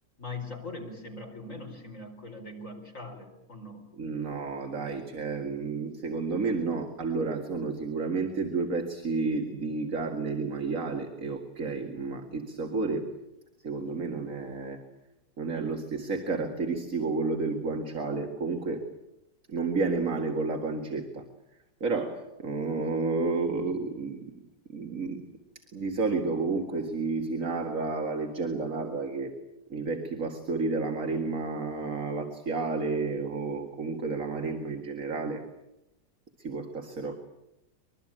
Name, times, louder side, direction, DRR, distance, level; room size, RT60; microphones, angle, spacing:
voice 1, 0.2-3.9, left 2 dB, 45° left, 3 dB, 4.9 m, -41 dB
voice 2, 4.0-13.1 13.6-14.8 15.4-18.8 19.5-21.2 21.8-24.3 24.7-25.2 25.7-29.3 29.7-35.4 36.4-37.2, right 4 dB, 45° right, 3 dB, 2.3 m, -31 dB
24.5 x 22.0 x 8.9 m, 0.88 s
omnidirectional pair, 1.9 m